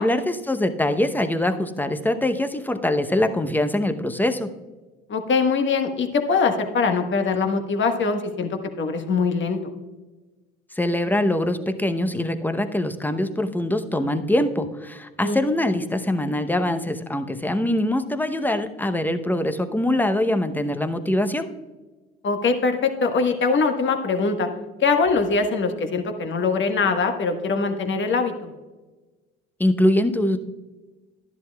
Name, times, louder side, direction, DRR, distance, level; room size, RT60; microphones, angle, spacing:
voice 1, 0.0-4.5 10.7-21.5 29.6-30.4, left 1 dB, 5° left, 8 dB, 0.8 m, -23 dB
voice 2, 5.1-8.5 8.8-9.6 15.2-15.4 22.2-24.5 24.8-28.5, left 4 dB, 40° left, 5 dB, 1.4 m, -22 dB
12.5 x 11.0 x 2.3 m, 1.2 s
hypercardioid pair, 70°, 29 cm